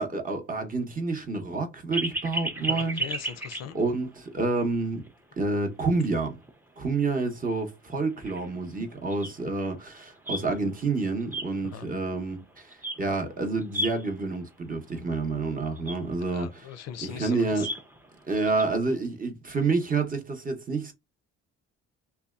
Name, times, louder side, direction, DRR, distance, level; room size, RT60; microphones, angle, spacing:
voice 1, 0.0-3.0 3.7-5.0 5.4-6.4 6.8-16.7 17.0-17.7 18.3-20.9, right 3 dB, 30° right, 0.8 m, -28 dB
sound 1, 1.9-4.1 4.5-4.6 5.1-5.2 6.5-6.6 7.1-7.2 7.5-7.6 7.9-10.8 11.2-12.5 12.7-13.2 13.5-14.4 15.0-15.1 15.3-15.4 15.6-18.6, right 1 dB, 5° right, 0.5 m, -34 dB
voice 2, 2.6-3.8 11.6-11.9 16.3-17.7 18.9-19.0, left 9 dB, 60° left, 0.4 m, -40 dB
2.7 x 2.2 x 2.3 m
cardioid pair, 85°, 30 cm